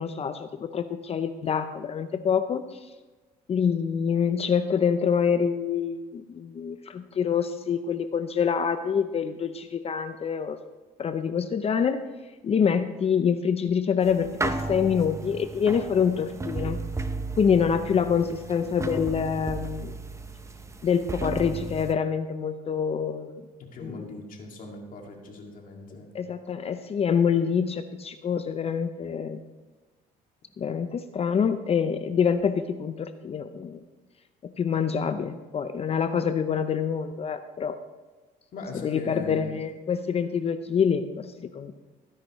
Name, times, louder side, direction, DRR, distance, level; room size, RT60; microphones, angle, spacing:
voice 1, 0.0-2.9 3.5-10.6 11.0-12.0 12.4-16.8 17.4-20.0 20.8-23.5 23.8-24.1 26.1-29.4 30.6-33.8 34.4-37.8 38.8-41.7, left 7 dB, 35° left, 10 dB, 0.6 m, -26 dB
sound 1, 14.0-21.9, right 3 dB, 15° right, 0.8 m, -34 dB
voice 2, 23.6-26.1 38.5-39.6, left 2 dB, 55° left, 1 dB, 2.2 m, -40 dB
18.0 x 10.0 x 3.1 m, 1.2 s
cardioid pair, 110°, 17 cm